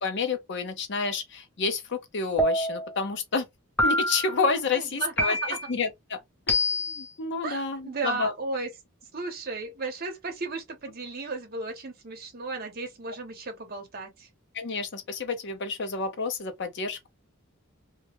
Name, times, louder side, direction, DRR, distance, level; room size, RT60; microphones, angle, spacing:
voice 1, 0.0-3.5 3.8-5.4 5.7-6.2 6.5-8.3 14.5-17.1, left 4 dB, 55° left, 0.6 m, -29 dB
sound 1, 2.4-3.0 3.8-4.4 5.2-5.8 6.5-7.1, left 1 dB, 10° left, 0.4 m, -26 dB
voice 2, 4.7-5.6 7.4-8.7 9.1-14.3, right 3 dB, 45° right, 0.8 m, -34 dB
2.2 x 2.1 x 2.9 m
head